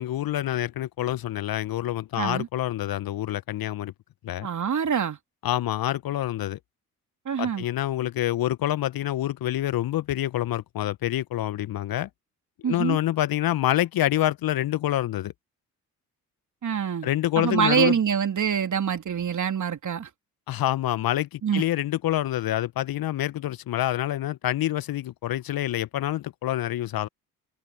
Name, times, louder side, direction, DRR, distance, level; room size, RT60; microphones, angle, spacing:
voice 1, 0.0-3.9 4.2-4.5 5.4-6.6 7.4-12.1 12.6-15.3 17.0-18.0 20.5-27.1, left 13 dB, 55° left, 1.4 m, -27 dB
voice 2, 2.2-2.5 4.4-5.2 7.2-7.6 12.6-13.0 16.6-17.1 17.3-20.1 21.4-21.6, right 7 dB, 45° right, 3.3 m, -25 dB
figure-of-eight pair, 45°, 43 cm